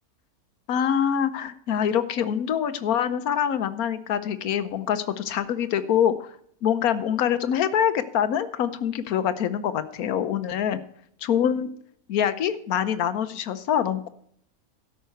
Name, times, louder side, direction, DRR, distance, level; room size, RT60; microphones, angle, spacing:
voice 1, 0.7-6.3 6.6-10.8 11.2-11.7 12.1-14.1, left 9 dB, 80° left, 12 dB, 1.3 m, -25 dB
12.5 x 5.6 x 7.9 m, 0.64 s
omnidirectional pair, 1.5 m